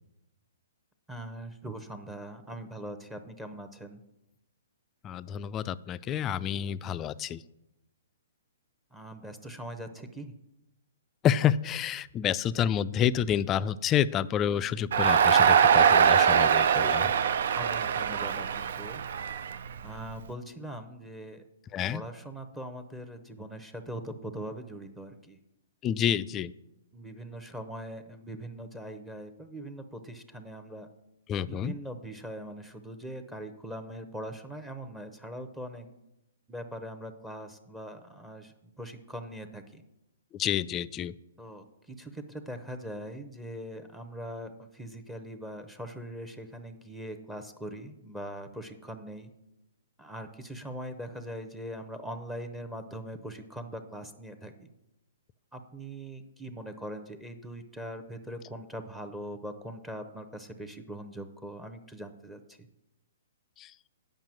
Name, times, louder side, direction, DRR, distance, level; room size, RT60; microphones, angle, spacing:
voice 1, 1.1-4.0 8.9-10.3 17.6-19.0 19.8-21.4 21.9-25.4 26.9-30.9 31.4-35.9 36.5-39.8 41.4-49.3 50.0-54.7 55.5-62.6, right 1 dB, 5° right, 8 dB, 0.7 m, -41 dB
voice 2, 5.0-7.4 11.2-17.1 21.7-22.0 25.8-26.5 31.3-31.8 40.3-41.1 63.6-63.7, left 9 dB, 25° left, 15 dB, 0.3 m, -29 dB
Crowd, 14.9-20.1, right 8 dB, 65° right, 0.4 m, -23 dB
8.9 x 5.5 x 7.5 m, 0.90 s
hypercardioid pair, 135°, 0 cm